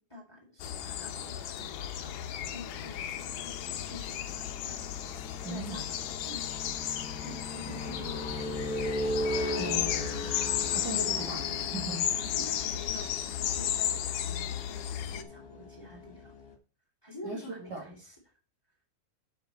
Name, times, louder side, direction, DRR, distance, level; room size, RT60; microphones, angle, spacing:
voice 1, 0.0-4.8 5.2-5.8 6.2-6.5 7.2-8.5 12.1-16.3 17.0-18.1, left 1 dB, 5° left, -1 dB, 3.1 m, -48 dB
sound 1, 0.6-15.2, left 10 dB, 75° left, 2.3 m, -34 dB
sound 2, 1.0-16.5, left 1 dB, 55° left, 1.0 m, -39 dB
voice 2, 5.4-5.9 7.7-7.8 9.6-10.3 10.7-12.1 12.4-12.6 17.2-17.8, right 2 dB, 35° right, -1 dB, 2.1 m, -39 dB
7.9 x 7.5 x 4.3 m, 0.35 s
omnidirectional pair, 4.1 m